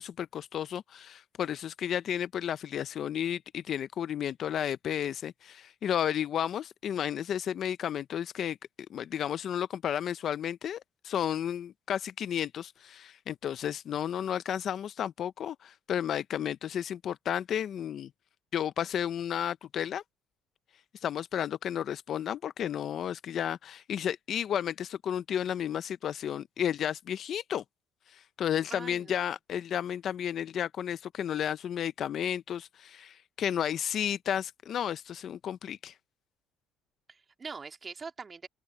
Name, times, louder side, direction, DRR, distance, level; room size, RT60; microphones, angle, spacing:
voice 1, 0.0-8.6 8.9-18.1 18.5-20.0 21.0-27.6 28.1-35.9, left 9 dB, 50° left, 0.5 m, -32 dB
voice 2, 28.7-29.3 37.1-38.5, right 5 dB, 25° right, 2.2 m, -43 dB
open air
cardioid pair, 125°, 0 cm